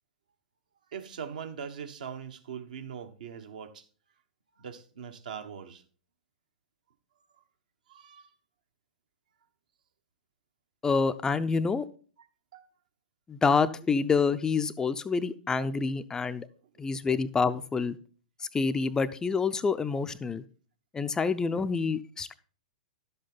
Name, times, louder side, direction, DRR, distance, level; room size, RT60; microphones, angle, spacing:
voice 1, 0.9-3.8 4.6-5.8 7.9-8.3 12.2-12.3 12.5-12.7 16.7-16.8, right 7 dB, 65° right, 1.3 m, -41 dB
voice 2, 10.8-11.8 13.3-16.5 16.8-18.0 18.5-20.4 20.9-22.3, left 5 dB, 15° left, 0.5 m, -27 dB
11.5 x 7.8 x 3.9 m
figure-of-eight pair, 105°, 5 cm